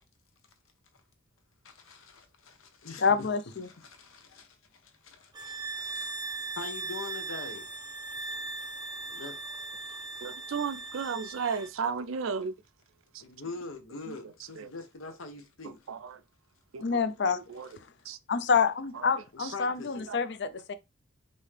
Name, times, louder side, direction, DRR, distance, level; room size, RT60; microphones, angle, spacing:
voice 1, 1.6-3.3 3.6-7.7 9.1-9.3 9.8-9.9 13.2-15.9 19.5-20.1, left 3 dB, 85° left, 1.0 m, -44 dB
voice 2, 3.0-3.7 16.8-17.4 18.3-20.7, left 5 dB, 55° left, 0.5 m, -27 dB
sound 1, 5.3-11.7, right 3 dB, 20° right, 0.5 m, -39 dB
voice 3, 10.2-12.5 14.6-14.7 15.9-16.2 16.7-16.8 17.5-17.7 18.1-18.2 20.1-20.2, right 6 dB, 80° right, 0.4 m, -33 dB
5.3 x 2.7 x 3.3 m
head